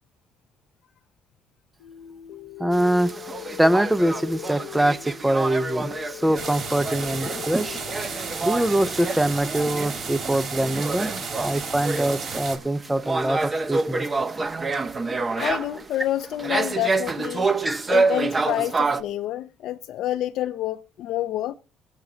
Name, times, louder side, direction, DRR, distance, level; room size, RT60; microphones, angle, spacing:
sound 1, 1.8-11.8, left 13 dB, 90° left, 0.9 m, -42 dB
voice 1, 2.6-3.1 3.6-7.8 8.4-11.1 11.4-14.1 14.4-14.5 17.6-18.0, right 1 dB, 5° right, 0.6 m, -23 dB
sound 2, 2.7-19.0, right 3 dB, 30° right, 0.9 m, -28 dB
sound 3, 6.3-12.6, right 5 dB, 50° right, 2.7 m, -33 dB
voice 2, 15.4-17.5 17.9-21.5, left 13 dB, 70° left, 0.5 m, -28 dB
18.0 x 7.3 x 3.9 m
cardioid pair, 105°, 0 cm